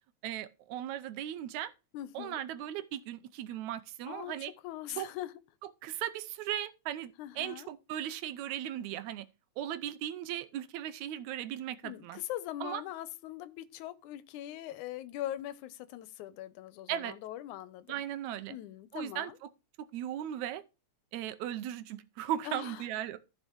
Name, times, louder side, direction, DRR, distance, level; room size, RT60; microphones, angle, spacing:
voice 1, 0.2-1.7 2.2-4.5 5.0-5.1 5.8-9.3 9.6-12.2 12.6-12.8 16.9-17.1 17.9-18.6 18.9-19.3 19.9-20.6 21.1-23.2, right 11 dB, 80° right, 2.0 m, -37 dB
voice 2, 1.9-2.4 4.1-5.3 7.2-7.7 11.8-18.0 18.5-19.4 22.4-22.8, left 13 dB, 85° left, 2.2 m, -41 dB
14.5 x 5.4 x 3.0 m
omnidirectional pair, 3.4 m